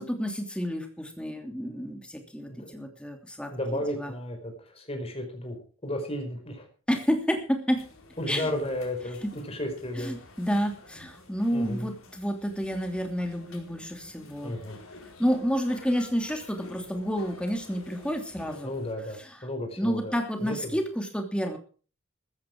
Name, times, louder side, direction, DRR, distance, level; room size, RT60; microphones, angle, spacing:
voice 1, 0.0-4.1 6.9-7.8 8.3-8.5 9.2-9.3 10.0-14.5 15.2-18.7 19.2-19.4 19.8-21.6, equal, 5° left, 4 dB, 2.9 m, -30 dB
voice 2, 2.5-2.9 3.5-5.6 5.8-6.7 8.2-9.2 9.5-10.1 11.5-11.9 14.4-14.8 18.6-20.8, left 1 dB, 30° left, 4 dB, 5.0 m, -33 dB
sound 1, 7.7-18.9, left 2 dB, 65° left, 4.6 m, -50 dB
15.5 x 13.5 x 4.9 m, 0.39 s
head